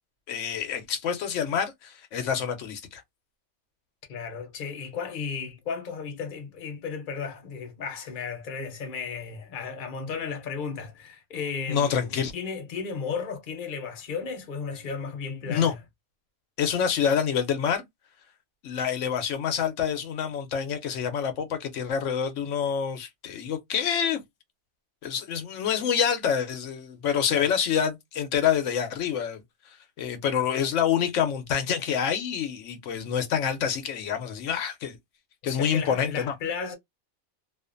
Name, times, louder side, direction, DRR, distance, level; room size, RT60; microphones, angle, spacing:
voice 1, 0.3-3.0 11.7-12.3 15.4-15.7 16.6-17.8 18.6-24.2 25.0-29.4 29.7-35.0 35.4-36.3, left 8 dB, 85° left, 1.0 m, -27 dB
voice 2, 4.1-15.8 27.3-27.5 35.4-36.8, left 5 dB, 50° left, 0.9 m, -34 dB
2.4 x 2.4 x 2.4 m
omnidirectional pair, 1.2 m